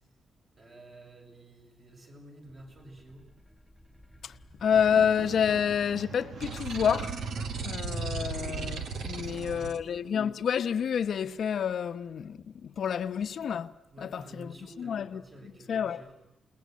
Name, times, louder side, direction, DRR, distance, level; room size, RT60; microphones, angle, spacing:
voice 1, 0.6-3.2 9.2-10.2 12.8-13.0 13.9-16.1, right 1 dB, 40° right, 6.7 m, -51 dB
sound 1, 2.4-10.0, equal, ahead, 1.3 m, -57 dB
voice 2, 4.2-7.2 7.6-15.2 15.7-16.0, left 8 dB, 65° left, 0.9 m, -29 dB
Male speech man speaking / Chatter / Rattle, 4.7-9.7, right 6 dB, 65° right, 1.5 m, -45 dB
sound 2, 6.4-9.8, right 5 dB, 85° right, 2.2 m, -35 dB
29.0 x 20.0 x 9.5 m
cardioid pair, 120°, 0 cm